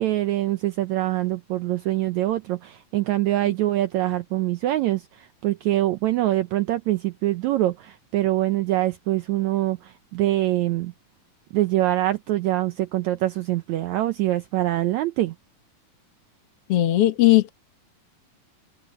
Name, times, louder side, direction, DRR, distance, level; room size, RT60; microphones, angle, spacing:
voice 1, 0.0-10.9 11.5-15.3, right 15 dB, 80° right, 1.7 m, -24 dB
voice 2, 16.7-17.5, left 15 dB, 60° left, 1.8 m, -17 dB
omnidirectional pair, 4.0 m